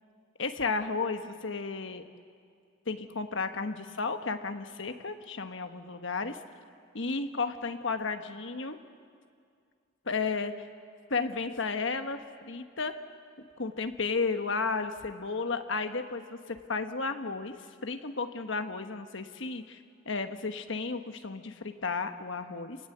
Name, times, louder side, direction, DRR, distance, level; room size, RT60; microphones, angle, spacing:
voice 1, 0.4-2.0 2.9-6.4 6.9-8.8 10.1-10.5 11.1-12.9 13.4-17.6 17.8-19.8 20.0-22.8, left 4 dB, 60° left, 8 dB, 1.3 m, -33 dB
29.0 x 18.5 x 8.0 m, 2.2 s
head